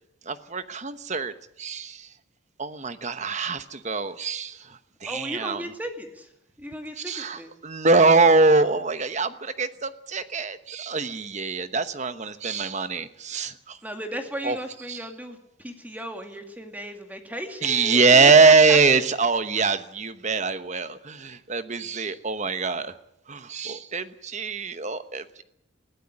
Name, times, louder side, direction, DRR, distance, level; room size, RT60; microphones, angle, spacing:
voice 1, 0.2-2.1 2.6-5.7 7.0-13.8 14.4-14.6 14.9-15.1 17.6-23.0 23.3-25.4, right 4 dB, 35° right, 11 dB, 1.1 m, -23 dB
voice 2, 5.1-6.3 6.6-7.5 13.8-18.8, right 1 dB, 10° right, 5 dB, 2.3 m, -36 dB
21.0 x 15.0 x 9.8 m, 0.79 s
head